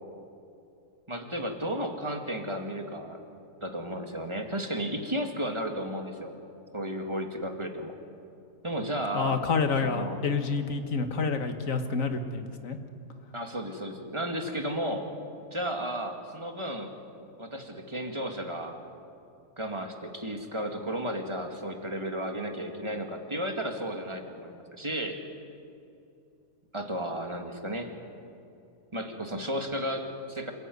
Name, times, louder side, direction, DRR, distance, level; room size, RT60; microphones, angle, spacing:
voice 1, 1.1-3.2 3.6-6.3 6.7-8.0 8.6-9.4 9.8-10.2 13.3-15.1 15.5-16.9 17.4-18.8 19.6-25.2 26.7-27.9 28.9-30.5, equal, 20° right, 3 dB, 2.2 m, -33 dB
voice 2, 9.1-12.8, left 4 dB, 60° left, 7 dB, 1.9 m, -28 dB
27.0 x 15.0 x 9.5 m, 2.7 s
omnidirectional pair, 1.6 m